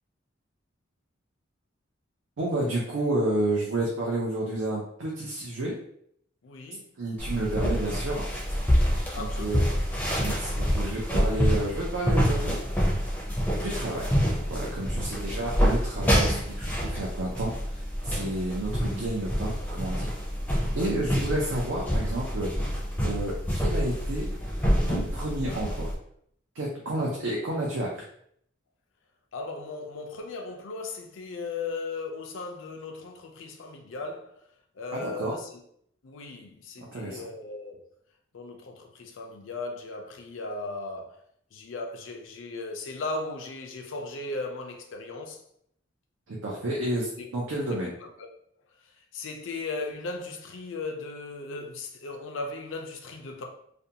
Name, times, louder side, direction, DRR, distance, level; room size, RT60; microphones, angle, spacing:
voice 1, 2.4-5.8 7.0-8.3 9.2-9.6 10.2-12.6 13.6-14.1 14.5-20.1 20.7-22.5 23.0-24.3 24.9-25.9 26.5-28.0 34.9-35.3 36.8-37.3 46.3-47.9, right 1 dB, 85° right, 0.5 m, -30 dB
voice 2, 6.4-6.9 9.1-9.8 20.5-20.8 29.3-34.4 34.8-35.6 36.0-37.9 38.3-41.2 41.5-45.4 47.2-47.3 47.7-48.3 49.1-53.5, left 3 dB, 70° left, 0.4 m, -37 dB
sound 1, 7.2-25.9, equal, 10° left, 0.5 m, -27 dB
2.5 x 2.2 x 2.7 m
head